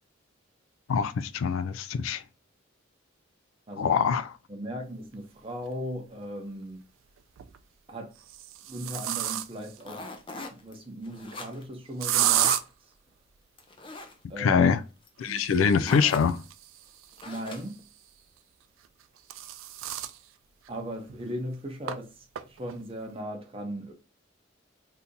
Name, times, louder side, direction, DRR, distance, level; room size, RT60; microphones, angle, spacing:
voice 1, 0.9-2.2 3.8-4.3 14.4-14.8 15.2-16.4, left 6 dB, 85° left, 0.3 m, -24 dB
voice 2, 4.5-6.9 7.9-8.1 8.7-10.1 10.5-12.6 14.3-14.6 15.3-15.4 17.2-17.8 20.7-22.1 22.5-23.9, equal, 25° right, 0.7 m, -37 dB
sound 1, 5.6-5.7 7.2-7.6 8.2-9.8 12.0-12.6 15.2-17.8 18.8-20.2 20.7-20.8 21.1-21.2 21.9-22.0 22.4-22.7, right 12 dB, 85° right, 0.4 m, -31 dB
sound 2, 9.8-10.7 11.0-11.7 12.1-12.7 13.6-14.1 15.1-15.2 15.4-15.5 15.8-16.3 17.2-17.8, left 2 dB, 25° left, 0.5 m, -39 dB
2.8 x 2.6 x 3.5 m
head